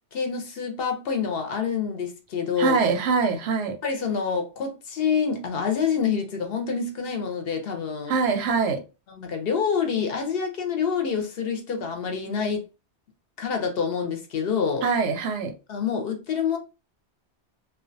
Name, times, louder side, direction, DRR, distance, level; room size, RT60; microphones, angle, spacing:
voice 1, 0.1-2.8 3.8-8.1 9.1-12.6 13.4-14.9 15.7-16.6, left 6 dB, 65° left, 0.7 m, -27 dB
voice 2, 2.6-3.8 8.1-8.8 14.8-15.5, right 5 dB, 90° right, 0.9 m, -23 dB
2.4 x 2.2 x 2.5 m
omnidirectional pair, 1.2 m